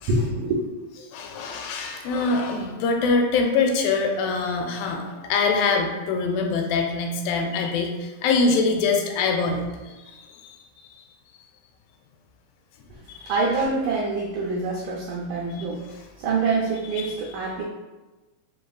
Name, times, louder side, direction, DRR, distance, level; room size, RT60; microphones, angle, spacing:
voice 1, 0.1-0.6 13.3-15.9 16.2-17.6, right 3 dB, 75° right, -4 dB, 2.0 m, -25 dB
voice 2, 1.1-10.6 13.1-13.3 15.6-15.7 16.9-17.1, left 4 dB, 85° left, 3 dB, 2.3 m, -24 dB
5.1 x 3.8 x 2.3 m, 1.2 s
omnidirectional pair, 4.0 m